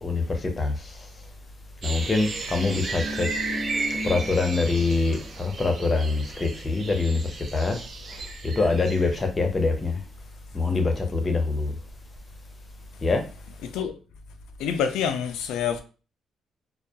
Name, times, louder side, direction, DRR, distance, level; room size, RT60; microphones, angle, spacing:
voice 1, 0.0-1.0 1.8-3.3 4.0-7.8 8.4-10.0 10.5-11.7 13.0-13.2, left 3 dB, 30° left, 0.6 m, -24 dB
sound 1, 1.8-9.2, right 4 dB, 50° right, 0.5 m, -35 dB
sound 2, 2.7-5.2 5.5-5.7, left 1 dB, 15° right, 1.1 m, -36 dB
voice 2, 13.6-14.0 14.6-15.8, left 7 dB, 90° left, 0.3 m, -27 dB
2.2 x 2.2 x 2.7 m
cardioid pair, 90°, 0 cm